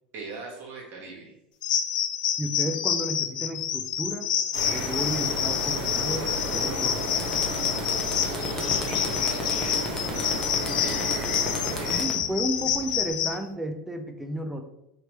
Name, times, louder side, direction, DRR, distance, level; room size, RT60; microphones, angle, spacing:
voice 1, 0.1-1.3 8.0-8.6 9.0-11.2 11.7-12.2, right 3 dB, 45° right, -2 dB, 1.3 m, -43 dB
sound 1, 1.6-13.4, left 9 dB, 75° left, 0.4 m, -28 dB
voice 2, 2.4-4.3 4.7-7.3 12.0-14.6, right 1 dB, 5° right, 5 dB, 0.5 m, -33 dB
sound 2, 4.5-12.0, right 1 dB, 80° right, 1.4 m, -32 dB
sound 3, 7.2-13.2, left 2 dB, 15° left, 0.8 m, -36 dB
3.3 x 2.9 x 3.0 m, 0.85 s
hypercardioid pair, 90°, 4 cm